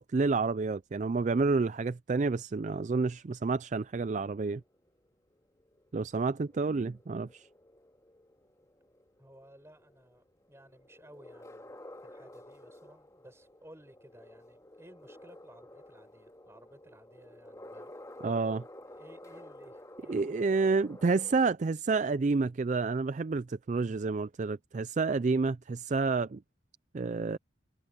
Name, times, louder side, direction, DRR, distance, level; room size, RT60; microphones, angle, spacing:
voice 1, 0.0-4.6 5.9-7.5 18.2-18.6 20.1-26.4 26.9-27.4, right 4 dB, 40° right, 0.4 m, -29 dB
sound 1, 4.1-21.5, left 1 dB, 15° left, 3.3 m, -52 dB
voice 2, 9.2-17.9 18.8-20.4, right 1 dB, 15° right, 7.0 m, -57 dB
head